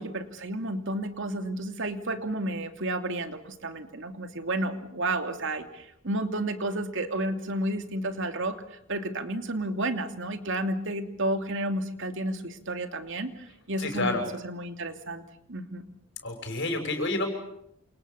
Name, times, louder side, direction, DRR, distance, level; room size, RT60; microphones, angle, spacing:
voice 1, 0.0-14.2 14.4-15.2 15.5-15.8, right 1 dB, 60° right, 7 dB, 2.8 m, -31 dB
voice 2, 13.8-14.2 16.2-17.3, left 2 dB, 60° left, 5 dB, 6.6 m, -29 dB
28.5 x 28.0 x 7.1 m, 0.75 s
head